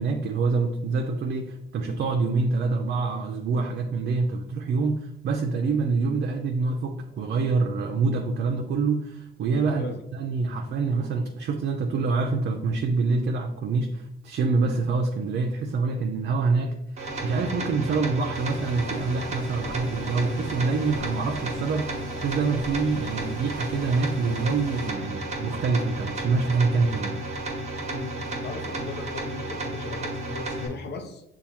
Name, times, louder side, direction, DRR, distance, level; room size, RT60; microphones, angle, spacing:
voice 1, 0.0-9.8 10.1-16.8 17.2-27.2, right 4 dB, 60° right, 3 dB, 0.5 m, -26 dB
voice 2, 9.6-10.0 10.3-10.5 27.9-31.2, left 3 dB, 60° left, 6 dB, 0.7 m, -37 dB
sound 1, 17.0-30.7, right 1 dB, 35° right, 1.1 m, -33 dB
sound 2, 18.3-24.9, left 2 dB, 20° left, 0.4 m, -42 dB
6.8 x 2.3 x 2.9 m, 0.84 s
cardioid pair, 90°, 20 cm